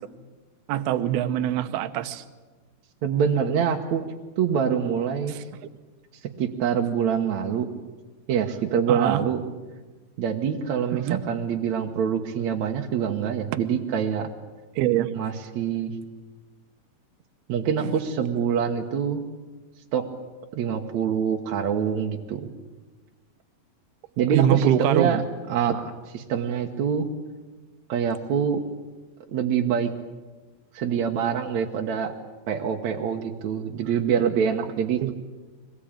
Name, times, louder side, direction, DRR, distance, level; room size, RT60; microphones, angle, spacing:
voice 1, 0.7-2.2 5.3-5.4 8.9-9.2 10.9-11.2 14.8-15.1 17.8-17.9 24.3-25.1 35.0-35.1, right 11 dB, 80° right, 11 dB, 2.9 m, -23 dB
voice 2, 3.0-4.0 4.4-5.4 6.4-7.7 8.3-9.4 10.2-14.3 15.1-15.9 17.5-19.2 19.9-20.0 20.5-22.5 24.2-25.2 25.5-27.1 27.9-28.6 29.3-29.9 30.7-32.1 32.5-35.1, right 7 dB, 60° right, 2 dB, 2.1 m, -25 dB
24.0 x 20.0 x 8.9 m, 1.3 s
omnidirectional pair, 4.5 m